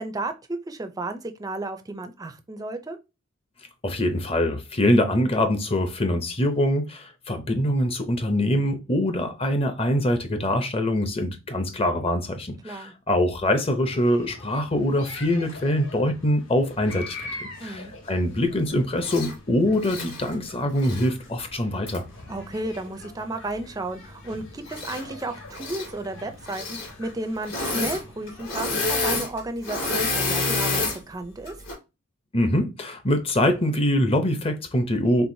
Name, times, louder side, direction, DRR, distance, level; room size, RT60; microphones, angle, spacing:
voice 1, 0.0-3.0 12.6-12.9 17.6-17.9 22.3-31.5, right 2 dB, 15° right, 0.4 m, -33 dB
voice 2, 3.8-22.0 32.3-35.3, left 1 dB, 25° left, 0.6 m, -24 dB
sound 1, 13.8-29.2, left 2 dB, 65° left, 1.2 m, -44 dB
Engine / Mechanisms, 19.0-19.3 19.8-21.1 21.9-22.0 24.7-25.2 25.5-25.9 26.4-26.9 27.4-28.0 28.3-31.0 31.5-31.7, left 3 dB, 50° left, 2.6 m, -28 dB
4.6 x 3.6 x 2.6 m
head